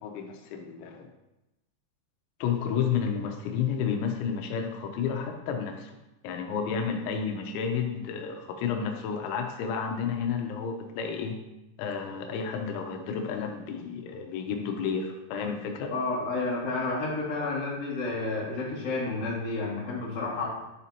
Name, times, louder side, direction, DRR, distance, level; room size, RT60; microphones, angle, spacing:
voice 1, 0.0-1.1 2.4-5.9 6.2-11.3 11.8-15.9, left 6 dB, 85° left, 4 dB, 3.1 m, -31 dB
voice 2, 15.9-20.5, left 3 dB, 35° left, -7 dB, 1.4 m, -30 dB
11.0 x 5.0 x 2.8 m, 0.94 s
omnidirectional pair, 5.3 m